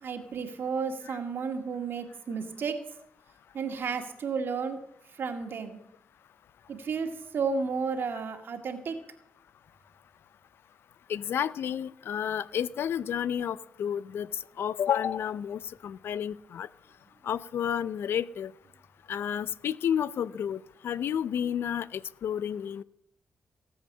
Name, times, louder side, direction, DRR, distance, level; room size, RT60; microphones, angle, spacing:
voice 1, 0.0-2.8 3.5-4.8 5.2-5.8 6.7-9.0, right 5 dB, 65° right, 5 dB, 2.0 m, -32 dB
voice 2, 11.1-16.7 17.2-18.5 19.1-22.8, left 9 dB, 75° left, 18 dB, 0.5 m, -31 dB
17.5 x 7.9 x 6.6 m, 0.75 s
cardioid pair, 60°, 4 cm